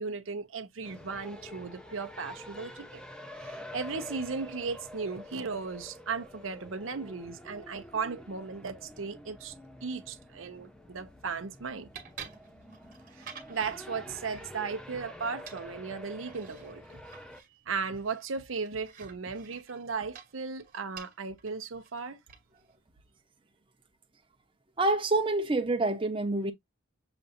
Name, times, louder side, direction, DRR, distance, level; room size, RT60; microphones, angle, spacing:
voice 1, 0.0-3.0 3.4-9.5 9.8-11.9 13.1-16.8 17.7-22.2, right 5 dB, 85° right, 0.8 m, -36 dB
sound 1, 0.8-17.4, left 1 dB, 5° left, 0.8 m, -48 dB
sound 2, 10.8-22.8, right 7 dB, 45° right, 1.3 m, -52 dB
voice 2, 24.8-26.5, right 2 dB, 25° right, 0.9 m, -27 dB
6.8 x 2.6 x 2.6 m
head